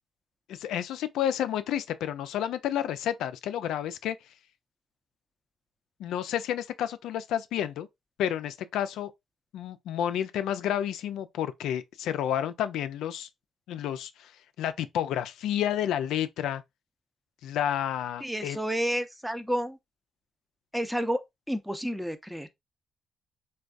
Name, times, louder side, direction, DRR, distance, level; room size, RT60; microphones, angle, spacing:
voice 1, 0.5-4.2 6.0-7.9 8.2-9.1 9.5-13.3 13.7-14.3 14.6-16.6 17.4-18.6, left 10 dB, 85° left, 0.3 m, -30 dB
voice 2, 18.2-19.8 20.7-21.2 21.5-22.5, equal, 5° right, 0.6 m, -30 dB
3.3 x 2.3 x 2.4 m
supercardioid pair, 65°, 0 cm